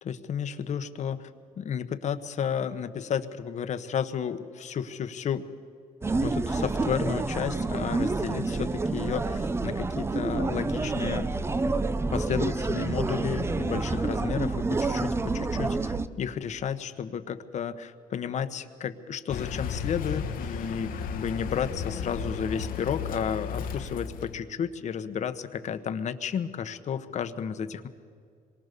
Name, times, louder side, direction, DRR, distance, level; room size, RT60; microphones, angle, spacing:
voice 1, 0.0-1.3 1.6-5.4 6.2-11.3 12.1-27.9, left 7 dB, 50° left, 11 dB, 1.2 m, -32 dB
sound 1, 6.0-16.1, right 3 dB, 15° right, 0.7 m, -28 dB
Car, 19.3-24.4, left 6 dB, 65° left, 1.4 m, -34 dB
26.5 x 23.0 x 6.8 m, 2.3 s
cardioid pair, 145°, 15 cm